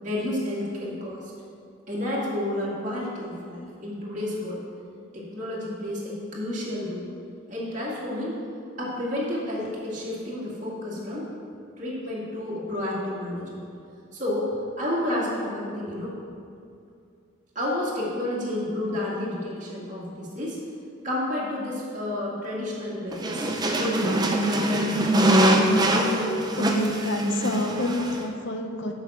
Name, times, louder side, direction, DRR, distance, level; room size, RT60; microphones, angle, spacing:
voice 1, 0.0-1.2 1.9-4.6 5.1-7.1 7.5-8.4 8.8-11.3 11.8-13.6 14.1-14.5 14.8-16.1 17.6-20.6 21.0-24.4, left 1 dB, 35° right, -6 dB, 2.1 m, -30 dB
sound 1, 23.1-28.2, right 1 dB, 20° right, 0.6 m, -23 dB
voice 2, 26.6-28.9, left 1 dB, 60° left, 4 dB, 0.9 m, -28 dB
7.3 x 5.7 x 7.3 m, 2.4 s
head